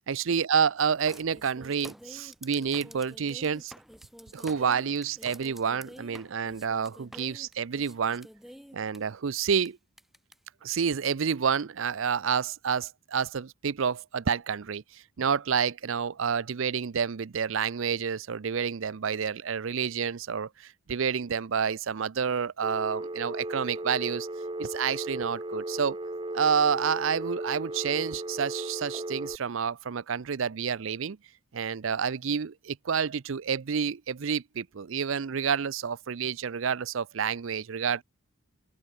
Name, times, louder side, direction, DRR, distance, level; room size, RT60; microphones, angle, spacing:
voice 1, 0.1-3.7 4.3-8.3 8.7-9.8 10.6-24.3 24.6-26.0 26.3-31.2 31.5-38.0, right 6 dB, 65° right, 0.5 m, -29 dB
sound 1, 1.1-9.0 9.7-9.8 10.0-10.3 11.0-11.1, equal, ahead, 4.5 m, -48 dB
Telephone, 22.6-29.4, right 2 dB, 25° right, 1.1 m, -36 dB
open air
head